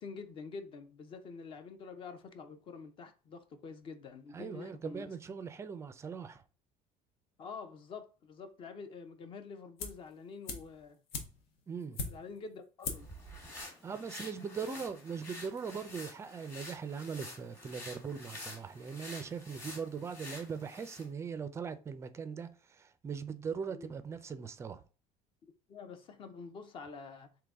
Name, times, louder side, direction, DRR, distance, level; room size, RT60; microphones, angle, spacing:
voice 1, 0.0-5.2 7.4-11.0 12.1-13.1 14.4-14.5 23.7-23.9 25.7-27.3, left 4 dB, 35° left, 0.6 m, -47 dB
voice 2, 4.3-6.4 11.7-12.0 13.8-24.8, right 6 dB, 20° right, 0.4 m, -40 dB
sound 1, 9.8-10.1 10.4-12.4 12.8-13.2 13.5-13.6, left 4 dB, 85° left, 1.1 m, -40 dB
sound 2, 12.9-21.1, left 1 dB, 15° left, 1.3 m, -49 dB
3.9 x 2.9 x 3.4 m
cardioid pair, 160°, 15 cm